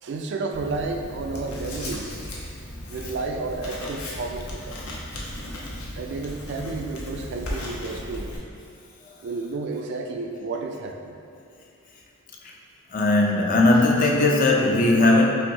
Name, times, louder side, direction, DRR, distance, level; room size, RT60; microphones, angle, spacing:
voice 1, 0.0-2.1 2.8-4.8 5.9-8.3 9.2-11.2, right 3 dB, 55° right, 3 dB, 0.3 m, -31 dB
Writing, 0.5-8.4, left 1 dB, 75° left, 0.8 m, -36 dB
voice 2, 12.9-15.3, left 2 dB, 40° left, -1 dB, 0.4 m, -18 dB
5.8 x 2.6 x 2.7 m, 2.5 s
head